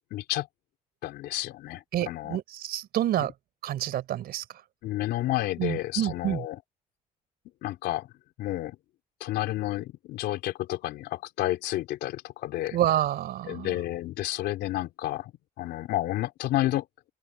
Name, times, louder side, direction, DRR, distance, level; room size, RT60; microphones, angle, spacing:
voice 1, 0.1-0.5 1.0-2.4 3.2-3.3 4.8-6.6 7.6-8.1 8.4-8.8 9.2-12.8 13.5-15.3 15.6-17.1, left 15 dB, 80° left, 3.7 m, -31 dB
voice 2, 1.9-3.3 3.6-4.4 5.6-6.4 12.7-13.8, right 12 dB, 65° right, 3.9 m, -28 dB
open air
cardioid pair, 110°, 17 cm